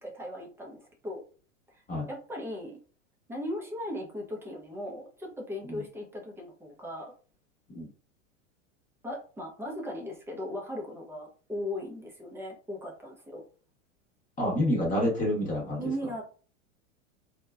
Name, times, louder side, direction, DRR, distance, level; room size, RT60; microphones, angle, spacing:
voice 1, 0.0-1.2 1.7-1.8 2.1-2.8 3.3-7.1 9.0-13.4 15.8-16.2, left 1 dB, 5° right, -1 dB, 0.5 m, -38 dB
voice 2, 14.4-15.8, left 1 dB, 20° left, -3 dB, 0.9 m, -28 dB
2.9 x 2.2 x 2.3 m, 0.40 s
hypercardioid pair, 115°, 40 cm